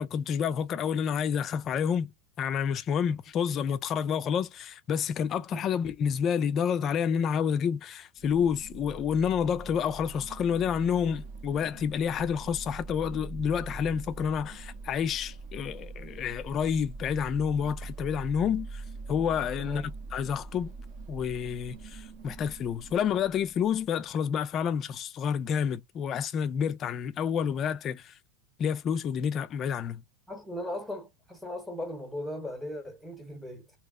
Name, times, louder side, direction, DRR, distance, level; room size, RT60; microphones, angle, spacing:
voice 1, 0.0-2.1 2.4-20.7 21.1-28.1 28.6-30.0, left 7 dB, 25° left, 0.3 m, -29 dB
sound 1, 8.2-24.1, right 3 dB, 45° right, 0.8 m, -43 dB
voice 2, 19.6-20.0 30.3-33.7, left 1 dB, ahead, 0.9 m, -38 dB
2.7 x 2.0 x 3.5 m
supercardioid pair, 155°, 0 cm